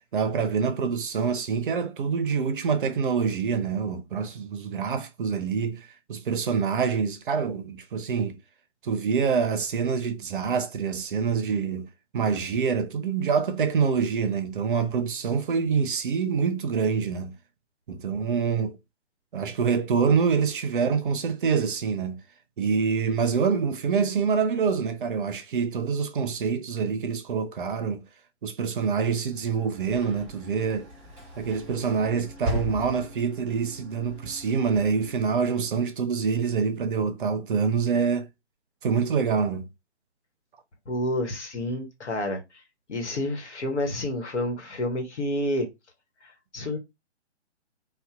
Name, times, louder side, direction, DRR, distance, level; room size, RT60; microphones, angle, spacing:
voice 1, 0.1-8.4 8.8-11.9 12.1-17.3 17.9-18.8 19.3-22.2 22.6-28.0 28.4-30.9 31.4-38.3 38.8-39.7, right 6 dB, 50° right, 0.5 m, -26 dB
Sliding door / Slam, 29.0-36.0, left 1 dB, 5° right, 1.2 m, -39 dB
voice 2, 40.9-42.4 42.9-45.7 46.5-46.8, left 1 dB, 75° left, 1.1 m, -29 dB
2.7 x 2.2 x 2.3 m
figure-of-eight pair, 140°, 35 cm